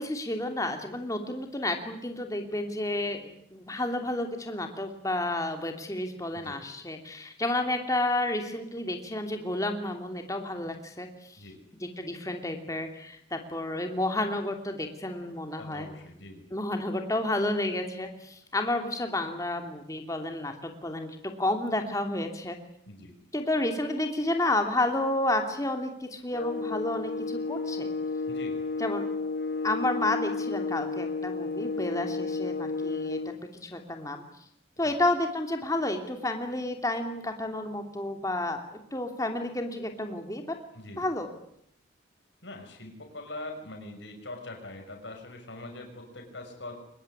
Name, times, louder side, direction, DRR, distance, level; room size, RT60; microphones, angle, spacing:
voice 1, 0.0-11.4 12.0-15.9 16.5-22.6 23.3-27.9 28.8-29.1 29.6-33.3 33.6-34.2 34.8-38.6 38.9-40.6 41.0-41.3, left 1 dB, 15° left, 5 dB, 2.8 m, -31 dB
voice 2, 15.6-16.5 22.9-23.2 28.3-28.6 34.8-35.0 40.7-41.1 42.4-46.8, left 2 dB, 70° left, 3 dB, 6.2 m, -43 dB
sound 1, 26.3-33.4, left 3 dB, 50° left, 1.4 m, -32 dB
24.0 x 21.0 x 9.8 m, 0.72 s
head